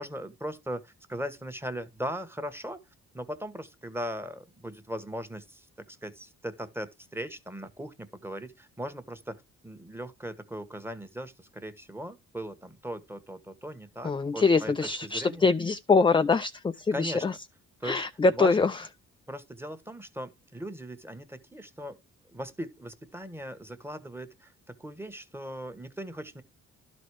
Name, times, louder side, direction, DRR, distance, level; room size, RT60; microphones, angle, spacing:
voice 1, 0.0-2.8 3.1-14.7 15.0-15.5 16.9-17.2 17.8-18.0 18.3-18.6 19.3-22.0 22.3-26.4, equal, 10° right, 1.4 m, -39 dB
voice 2, 14.0-17.3 17.8-18.9, left 4 dB, 15° left, 0.5 m, -24 dB
12.0 x 4.2 x 4.7 m
cardioid pair, 90°, 30 cm